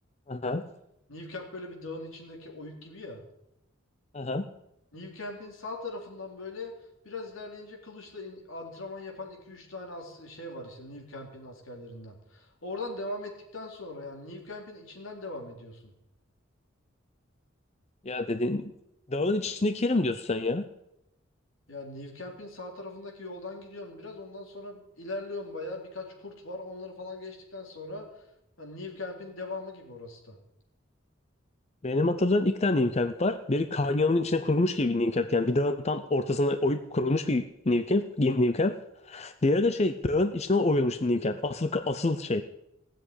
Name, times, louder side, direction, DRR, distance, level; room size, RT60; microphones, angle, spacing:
voice 1, 0.3-0.7 4.1-4.4 18.0-18.7 19.1-20.6 31.8-38.8 39.1-42.4, left 2 dB, 35° left, 10 dB, 0.6 m, -26 dB
voice 2, 1.1-3.2 4.9-6.7 7.0-15.9 21.7-28.3 28.6-30.4, left 2 dB, 80° left, 1 dB, 4.1 m, -40 dB
17.5 x 7.6 x 10.0 m, 0.84 s
head